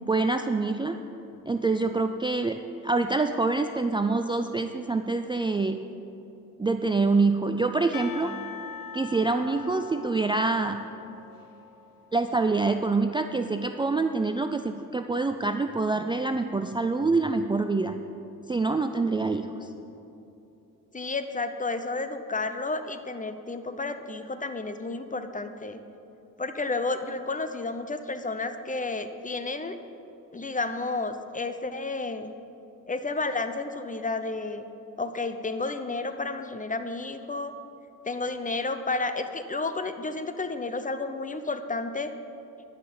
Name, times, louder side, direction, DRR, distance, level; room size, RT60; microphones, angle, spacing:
voice 1, 0.1-1.0 1.5-5.8 6.6-8.4 8.9-10.8 12.1-18.0 18.5-19.7, right 3 dB, 15° right, 7 dB, 0.4 m, -26 dB
Percussion / Church bell, 7.9-12.7, left 6 dB, 65° left, 1.1 m, -43 dB
voice 2, 20.9-25.8 26.4-29.8 30.3-32.3 32.9-34.6 35.0-37.5 38.0-42.1, left 3 dB, 20° left, 9 dB, 0.7 m, -31 dB
11.0 x 5.9 x 8.9 m, 2.9 s
cardioid pair, 85°, 36 cm